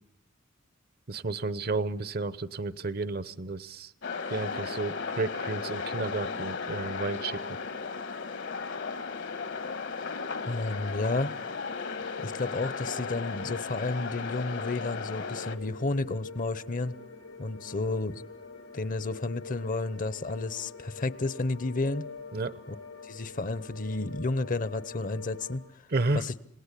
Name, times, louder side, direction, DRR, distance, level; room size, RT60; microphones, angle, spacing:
voice 1, 1.1-3.9 4.3-7.4 22.3-22.6 25.9-26.2, right 3 dB, 50° right, 16 dB, 0.8 m, -32 dB
sound 1, 4.0-15.6, left 5 dB, 65° left, 1.5 m, -35 dB
voice 2, 10.4-11.3 12.2-17.0 17.4-18.3 18.7-22.0 22.7-22.8 23.0-25.6 26.1-26.3, left 2 dB, 40° left, 17 dB, 0.9 m, -31 dB
sound 2, 11.6-25.6, left 4 dB, 80° left, 7.3 m, -45 dB
27.0 x 19.0 x 8.3 m, 0.80 s
head